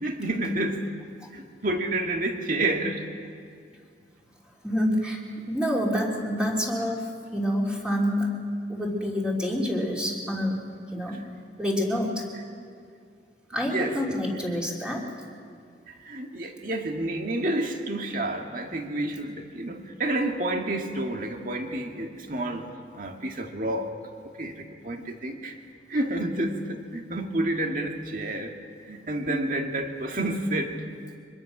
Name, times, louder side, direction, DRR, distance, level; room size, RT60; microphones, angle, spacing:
voice 1, 0.0-0.9 1.3-3.1 11.1-11.2 13.7-14.2 15.9-23.9 24.4-25.6 25.9-28.5 28.9-30.8, right 1 dB, 45° right, 3 dB, 2.0 m, -29 dB
voice 2, 4.6-5.2 5.5-8.3 8.7-10.6 10.9-11.2 11.6-12.2 13.5-15.0 29.3-29.4, equal, 5° right, -3 dB, 3.1 m, -27 dB
24.0 x 22.0 x 6.1 m, 2.2 s
head